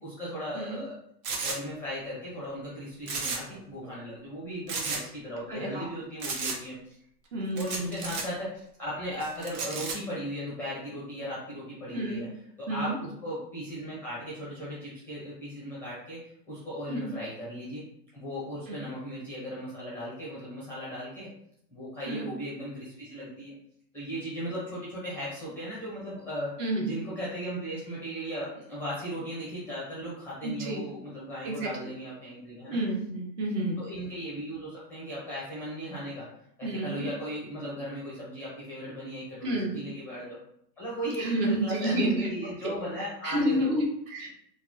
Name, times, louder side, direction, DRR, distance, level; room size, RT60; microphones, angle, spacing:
voice 1, 0.0-0.9 1.4-7.0 7.5-8.5 8.8-12.4 12.7-17.8 18.1-21.3 21.7-23.5 23.9-26.5 26.8-32.8 33.8-36.3 36.6-40.4 40.8-43.8, equal, 5° left, -7 dB, 0.6 m, -37 dB
sound 1, 1.2-1.6 3.0-3.6 3.8-3.9 4.7-5.0 6.2-6.6 7.6-8.2 9.4-9.9, right 4 dB, 60° right, 1.1 m, -33 dB
voice 2, 5.5-5.9 7.3-8.1 11.9-12.2 12.7-12.9 16.9-17.1 18.7-18.8 22.1-22.3 26.6-26.9 30.4-30.9 31.4-31.7 32.7-33.8 36.6-37.1 39.4-39.8 41.2-42.2 42.6-42.7 43.2-44.3, right 1 dB, 35° right, -1 dB, 0.9 m, -30 dB
3.9 x 2.2 x 3.0 m, 0.73 s
hypercardioid pair, 140°, 49 cm